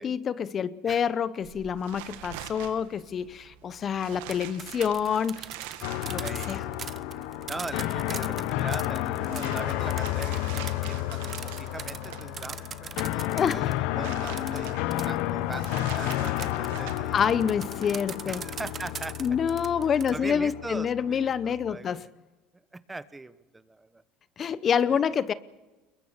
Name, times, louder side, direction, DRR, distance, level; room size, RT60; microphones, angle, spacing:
voice 1, 0.0-5.5 5.9-6.6 13.4-13.6 17.1-18.4 19.2-22.1 24.4-25.3, left 7 dB, 40° left, 0.8 m, -27 dB
turn newspaper, 1.4-18.7, right 12 dB, 85° right, 1.9 m, -45 dB
sound 1, 4.1-13.8 14.4-20.1, right 7 dB, 35° right, 1.0 m, -41 dB
sound 2, 5.8-21.7, left 15 dB, 75° left, 1.0 m, -31 dB
voice 2, 6.2-6.5 7.5-14.7 15.1-17.4 18.3-19.2 20.1-22.1 22.7-24.0 24.9-25.0, right 2 dB, 15° right, 1.1 m, -41 dB
22.0 x 21.5 x 7.3 m
supercardioid pair, 100°, 0 cm